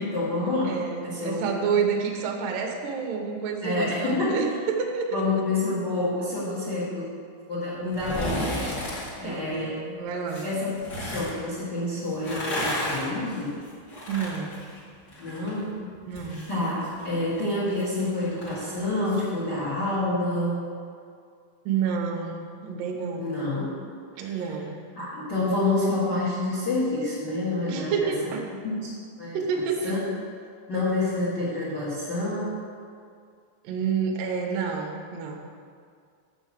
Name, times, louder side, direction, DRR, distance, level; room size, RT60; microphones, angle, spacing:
voice 1, 0.0-0.8 1.0-1.5 3.6-4.5 5.1-7.1 7.5-8.7 9.2-9.8 10.4-13.6 15.2-15.8 16.5-20.6 23.2-23.7 24.2-24.3 24.9-28.1 28.6-28.9 29.2-29.4 29.8-30.0 30.7-32.5, left 2 dB, 75° left, -8 dB, 0.9 m, -28 dB
voice 2, 0.7-5.2 9.2-10.4 14.1-14.6 16.1-16.5 21.7-23.3 24.2-24.7 27.7-28.5 29.3-29.9 33.6-35.4, right 6 dB, 85° right, 1 dB, 1.9 m, -29 dB
sound 1, 7.9-9.1 10.3-11.3 12.1-15.5 15.8-19.3 19.6-19.7, left 1 dB, 40° left, 1.5 m, -34 dB
7.0 x 6.5 x 7.4 m, 2.2 s
omnidirectional pair, 5.4 m